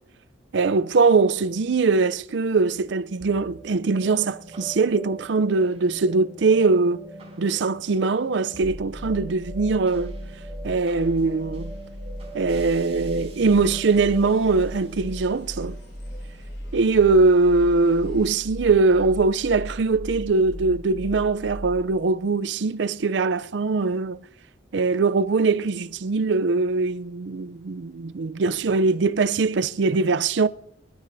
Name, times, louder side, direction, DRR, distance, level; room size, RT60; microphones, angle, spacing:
voice 1, 0.5-7.0 7.4-10.2 10.6-11.7 12.3-15.8 16.7-24.2 24.7-30.5, right 4 dB, 65° right, 0.5 m, -21 dB
sound 1, 3.2-17.6, right 1 dB, 35° right, 5.6 m, -44 dB
sound 2, 6.3-18.4, left 1 dB, 65° left, 7.3 m, -58 dB
sound 3, 8.6-22.0, equal, 10° left, 3.1 m, -37 dB
26.5 x 13.5 x 2.7 m
head